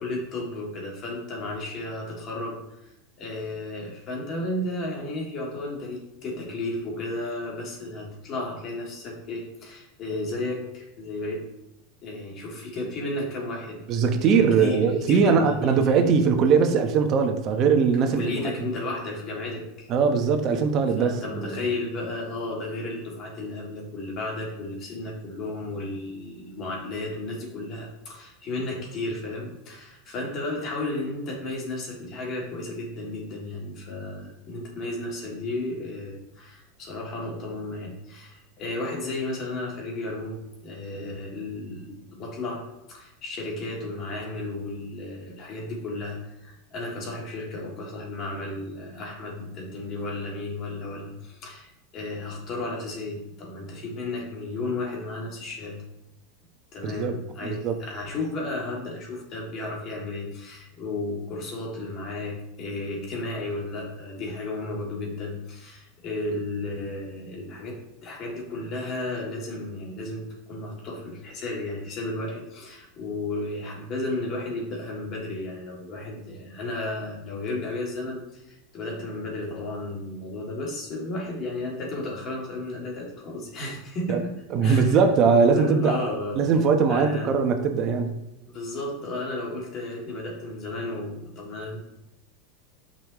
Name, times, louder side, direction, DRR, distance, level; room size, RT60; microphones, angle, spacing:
voice 1, 0.0-2.6 3.2-11.4 12.0-16.2 18.2-19.9 21.0-55.8 56.7-84.4 84.6-85.0 85.4-86.4 86.9-87.3 88.5-91.8, left 2 dB, 45° left, -2 dB, 2.7 m, -33 dB
voice 2, 13.9-18.3 19.9-21.6 56.8-57.2 57.4-57.8 84.1-84.2 84.5-86.1 86.3-88.2, right 5 dB, 45° right, 5 dB, 1.2 m, -21 dB
8.6 x 5.6 x 3.2 m, 0.90 s
hypercardioid pair, 100°, 0 cm